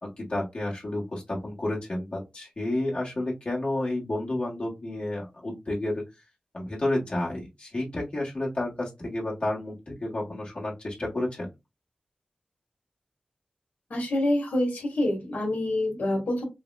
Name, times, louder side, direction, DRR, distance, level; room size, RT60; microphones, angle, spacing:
voice 1, 0.0-6.0 6.5-11.5, left 1 dB, 45° left, -4 dB, 1.2 m, -31 dB
voice 2, 13.9-16.4, left 1 dB, 75° left, 1 dB, 1.3 m, -26 dB
4.6 x 2.0 x 2.2 m, 0.23 s
wide cardioid pair, 70°, 3 cm